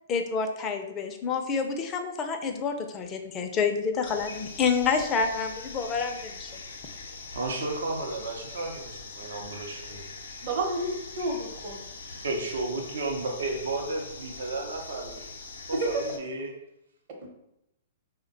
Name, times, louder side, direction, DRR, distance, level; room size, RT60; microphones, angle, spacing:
voice 1, 0.1-6.6, left 5 dB, 25° left, 5 dB, 0.4 m, -28 dB
sound 1, 4.0-16.2, left 3 dB, 75° left, 0.6 m, -42 dB
voice 2, 7.3-10.1 12.1-15.2 15.7-16.5, right 2 dB, 75° right, 2 dB, 0.6 m, -33 dB
voice 3, 10.4-11.8 15.7-16.0 17.2-17.3, right 2 dB, 50° right, 1 dB, 0.9 m, -30 dB
3.4 x 2.1 x 3.9 m, 0.85 s
hypercardioid pair, 125°, 0 cm